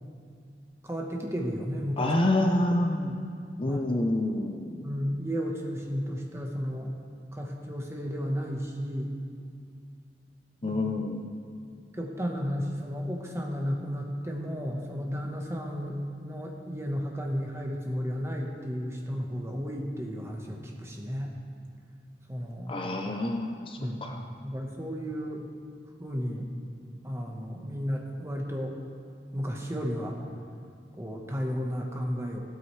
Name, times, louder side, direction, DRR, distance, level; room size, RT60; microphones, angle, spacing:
voice 1, 0.8-2.1 3.7-3.8 4.8-6.9 7.3-9.1 10.6-10.8 11.9-21.4 22.3-22.8 23.8-24.0 24.4-25.4 26.0-26.5 27.0-28.8 29.3-30.2 31.0-32.4, equal, 15° right, 0 dB, 1.2 m, -33 dB
voice 2, 2.0-3.1 3.6-4.9 10.6-11.2 22.7-24.2, left 1 dB, 30° left, 3 dB, 0.6 m, -27 dB
15.5 x 12.5 x 3.3 m, 2.3 s
head